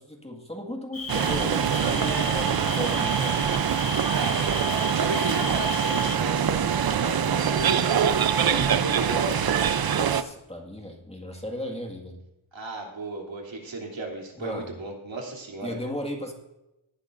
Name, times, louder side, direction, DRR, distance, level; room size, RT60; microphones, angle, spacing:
voice 1, 0.0-3.4 8.4-8.6 10.0-12.2 14.4-14.7 15.6-16.3, left 1 dB, 10° left, 1 dB, 1.9 m, -35 dB
Cricket, 0.9-6.2, left 3 dB, 30° left, 3.1 m, -35 dB
sound 1, 1.1-10.2, right 8 dB, 50° right, 0.6 m, -24 dB
voice 2, 4.1-9.6 12.5-15.7, right 3 dB, 65° right, -1 dB, 3.2 m, -35 dB
18.5 x 11.5 x 2.6 m, 0.93 s
wide cardioid pair, 105°, 48 cm